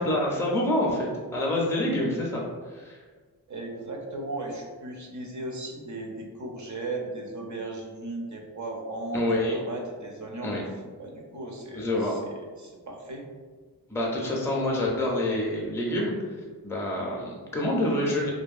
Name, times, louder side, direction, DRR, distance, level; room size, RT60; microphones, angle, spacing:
voice 1, 0.0-2.4 2.7-3.0 9.1-9.6 10.4-10.6 11.7-12.2 13.9-16.1 16.6-18.3, left 1 dB, 5° left, -3 dB, 0.4 m, -27 dB
voice 2, 3.5-10.5 11.0-13.3, right 2 dB, 50° right, 0 dB, 0.5 m, -36 dB
2.7 x 2.2 x 2.3 m, 1.5 s
wide cardioid pair, 85°, 38 cm